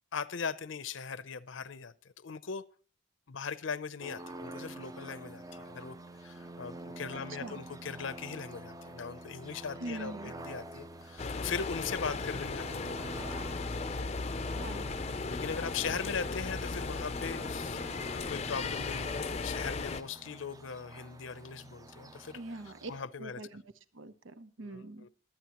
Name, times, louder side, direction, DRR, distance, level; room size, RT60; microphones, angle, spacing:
voice 1, 0.1-2.6 3.3-6.0 6.2-12.9 15.3-23.4 24.6-25.1, left 6 dB, 80° left, 0.6 m, -39 dB
sound 1, 4.0-23.0, right 2 dB, 20° right, 0.5 m, -47 dB
voice 2, 7.1-7.6 9.8-10.3 14.5-14.9 22.3-22.9 23.2-23.6 23.9-25.1, right 2 dB, 80° right, 0.8 m, -43 dB
sound 2, 11.2-20.0, left 4 dB, 35° left, 0.5 m, -36 dB
23.0 x 8.9 x 3.0 m
head